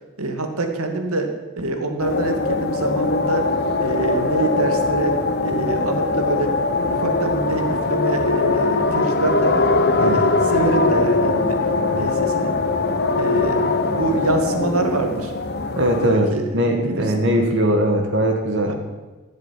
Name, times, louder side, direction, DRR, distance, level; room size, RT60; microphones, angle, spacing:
voice 1, 0.2-3.5 3.8-6.6 6.9-9.7 10.0-11.6 11.9-12.6 13.2-13.7 13.9-15.3 16.0-17.3 18.7-18.8, right 2 dB, 75° right, 5 dB, 2.1 m, -25 dB
sound 1, 2.0-16.1, left 3 dB, 45° left, 1.0 m, -21 dB
voice 2, 15.8-16.3 16.5-18.7, right 1 dB, 55° right, 2 dB, 1.9 m, -20 dB
15.5 x 7.7 x 9.9 m, 1.2 s
head